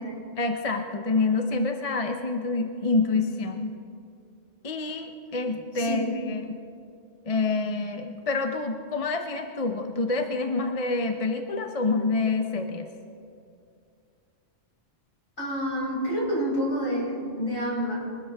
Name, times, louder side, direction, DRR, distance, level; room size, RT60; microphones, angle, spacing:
voice 1, 0.4-3.7 4.6-6.6 7.3-12.9, left 3 dB, 35° left, 5 dB, 0.8 m, -27 dB
voice 2, 5.7-6.1 15.4-18.0, equal, 50° left, -5 dB, 5.2 m, -28 dB
23.5 x 13.0 x 3.5 m, 2.4 s
omnidirectional pair, 1.2 m